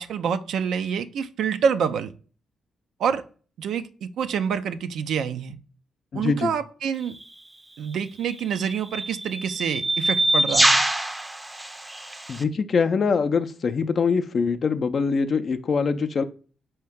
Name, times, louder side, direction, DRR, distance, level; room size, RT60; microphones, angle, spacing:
voice 1, 0.0-2.1 3.0-3.2 3.6-5.6 6.1-7.2 7.8-10.8, right 7 dB, 80° right, 10 dB, 0.3 m, -27 dB
voice 2, 6.1-6.5 12.3-16.2, left 5 dB, 55° left, 8 dB, 0.4 m, -23 dB
sound 1, 7.0-7.2 8.2-12.4, right 1 dB, 15° right, 0.5 m, -24 dB
4.5 x 2.8 x 3.4 m, 0.39 s
cardioid pair, 75°, 0 cm